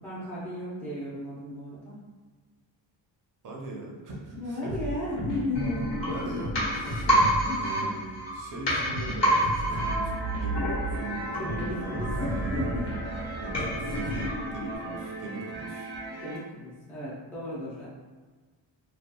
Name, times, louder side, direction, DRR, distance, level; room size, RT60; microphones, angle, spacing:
voice 1, 0.0-2.0 4.3-5.9 6.2-6.4 7.1-7.8 11.2-12.9 16.1-17.9, left 1 dB, 5° left, -9 dB, 0.6 m, -35 dB
voice 2, 3.4-4.8 6.1-7.1 7.6-10.1 10.4-11.2 11.7-12.7 13.4-15.9, right 2 dB, 40° right, -2 dB, 0.7 m, -40 dB
sound 1, 4.7-14.8, right 1 dB, 40° left, 0.9 m, -37 dB
sound 2, 5.5-15.2 15.6-15.7, right 1 dB, 60° left, 1.2 m, -29 dB
sound 3, 9.7-16.4, right 2 dB, 90° right, 0.8 m, -39 dB
2.8 x 2.4 x 2.3 m, 1.4 s
wide cardioid pair, 130°, 47 cm